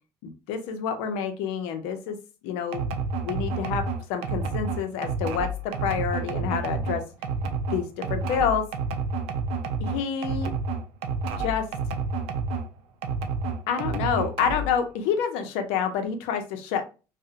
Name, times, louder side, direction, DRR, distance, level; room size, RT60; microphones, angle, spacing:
voice 1, 0.2-2.2 2.4-2.8 3.2-7.0 7.7-8.7 9.8-10.5 11.4-11.7 13.7-16.9, left 7 dB, 80° left, 7 dB, 0.5 m, -28 dB
sound 1, 2.7-12.7 13.0-14.8, right 3 dB, 70° right, 0.5 m, -29 dB
2.7 x 2.0 x 2.4 m, 0.32 s
supercardioid pair, 85°, 10 cm